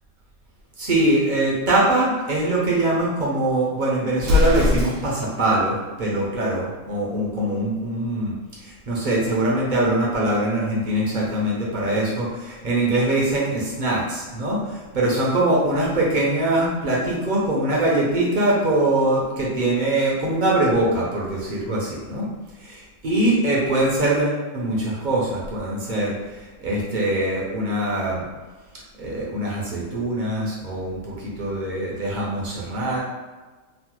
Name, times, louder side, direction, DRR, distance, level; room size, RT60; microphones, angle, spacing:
voice 1, 0.8-8.3 8.6-22.3 22.6-28.2 29.0-33.0, right 1 dB, 55° right, -4 dB, 0.5 m, -23 dB
Explosion, 4.2-5.3, left 2 dB, 70° right, 1.0 m, -20 dB
3.1 x 2.1 x 2.9 m, 1.3 s
omnidirectional pair, 1.4 m